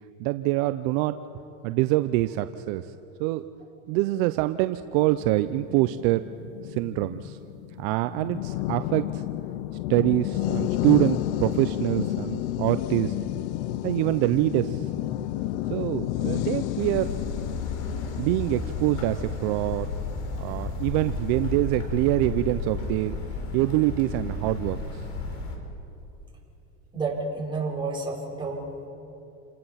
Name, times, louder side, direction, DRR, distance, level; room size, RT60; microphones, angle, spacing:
voice 1, 0.2-1.2 1.6-2.9 3.2-3.5 3.9-6.2 6.6-7.4 7.8-9.2 9.9-13.1 13.8-14.9 15.7-17.1 18.2-19.9 20.4-23.2 23.5-25.0, right 17 dB, 60° right, 11 dB, 0.7 m, -25 dB
sound 1, 4.9-20.4, left 14 dB, 70° left, 0.8 m, -31 dB
sound 2, 16.8-25.6, left 4 dB, 50° left, 4.3 m, -33 dB
voice 2, 26.9-28.7, right 3 dB, 15° right, -4 dB, 5.0 m, -30 dB
28.5 x 18.5 x 5.8 m, 2.9 s
supercardioid pair, 125°, 36 cm